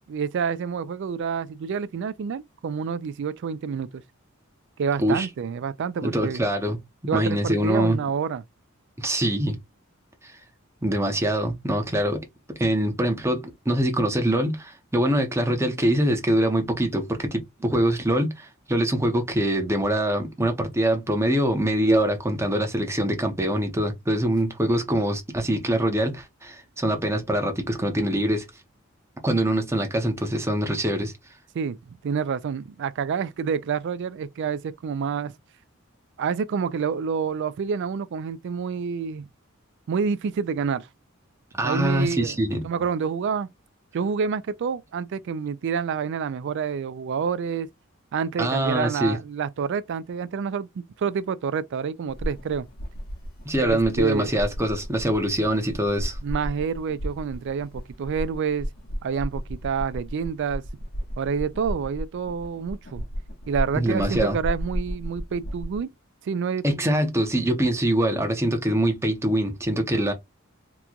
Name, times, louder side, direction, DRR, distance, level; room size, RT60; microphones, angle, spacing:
voice 1, 0.1-4.0 4.8-6.4 7.1-8.4 31.5-35.3 36.2-39.3 39.9-40.9 41.6-42.4 42.6-43.5 43.9-47.7 48.1-50.7 51.0-52.7 53.6-54.3 56.2-58.7 59.0-60.6 61.2-63.0 63.5-65.9 66.2-66.6, right 6 dB, 60° right, 0.3 m, -28 dB
voice 2, 6.0-6.8 7.1-8.0 9.0-9.6 10.8-12.2 12.6-28.5 29.2-31.1 41.6-42.6 48.4-49.2 53.4-56.2 63.8-64.4 66.6-70.1, right 1 dB, 15° right, 0.7 m, -24 dB
sound 1, 52.1-65.8, equal, 50° left, 0.8 m, -34 dB
3.0 x 2.2 x 3.7 m
head